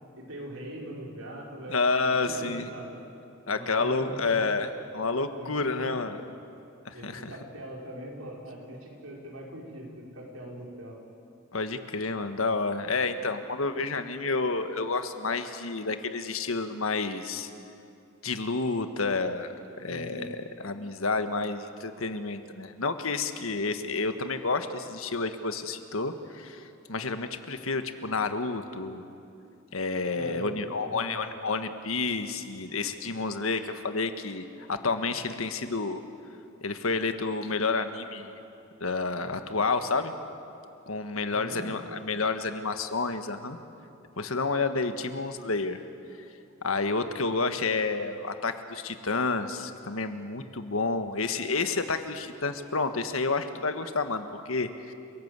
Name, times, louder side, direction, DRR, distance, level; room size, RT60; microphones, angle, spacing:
voice 1, 0.2-2.9 3.5-4.4 5.4-6.1 6.9-11.0 13.6-13.7 19.9-20.3 30.1-31.3 41.3-42.0, right 1 dB, 80° right, -2 dB, 5.5 m, -41 dB
voice 2, 1.7-2.7 3.5-4.7 4.9-6.2 6.8-7.3 11.5-17.5 18.2-19.5 19.8-29.0 29.7-36.0 36.6-38.4 38.8-40.1 40.9-43.6 44.2-45.8 46.6-54.9, left 3 dB, 85° left, 8 dB, 1.6 m, -30 dB
29.5 x 17.5 x 8.3 m, 2.6 s
head